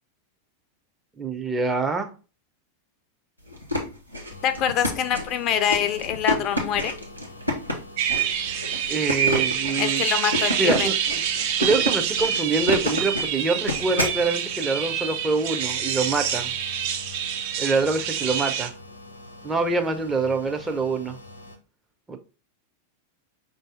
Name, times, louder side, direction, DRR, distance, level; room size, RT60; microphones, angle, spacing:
voice 1, 1.2-2.1 8.9-10.0 10.6-10.9 11.6-16.5 17.6-18.7 19.4-21.2 22.1-22.2, right 3 dB, 15° right, 0.6 m, -25 dB
sound 1, 3.5-14.2, left 1 dB, 90° right, 1.0 m, -29 dB
sound 2, 4.3-21.6, left 2 dB, 75° left, 0.6 m, -44 dB
voice 2, 4.4-6.9 9.8-10.9, left 9 dB, 35° left, 0.4 m, -25 dB
sound 3, 8.0-18.7, right 8 dB, 50° right, 0.6 m, -27 dB
5.4 x 2.7 x 3.4 m
figure-of-eight pair, 90°, 0 cm